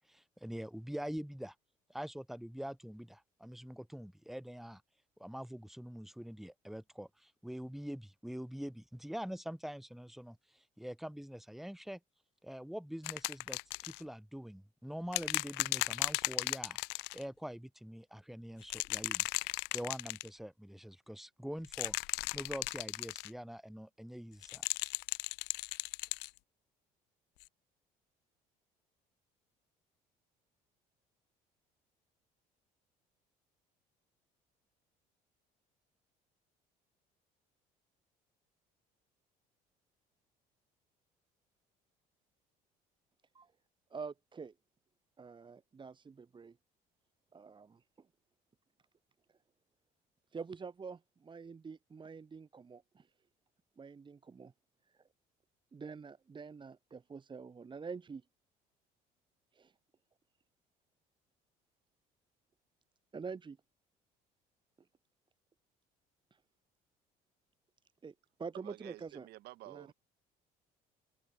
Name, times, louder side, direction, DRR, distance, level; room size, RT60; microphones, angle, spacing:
voice 1, 0.1-1.5 1.9-4.8 5.2-12.0 12.4-22.0 22.3-24.7, equal, ahead, 3.2 m, -44 dB
sound 1, 13.0-14.0 15.1-17.2 18.6-20.3 21.6-23.3 24.4-26.3 27.4-27.5, left 27 dB, 85° left, 0.9 m, -36 dB
voice 2, 43.9-44.5 45.2-46.6 47.3-48.1 50.3-53.1 53.8-54.5 54.9-55.0 55.7-58.2 59.5-59.7 63.1-63.6 66.3-66.4 68.0-68.1 68.4-69.3 69.7-69.9, right 5 dB, 30° right, 1.8 m, -46 dB
voice 3, 68.5-69.9, right 17 dB, 75° right, 4.1 m, -51 dB
supercardioid pair, 85°, 17 cm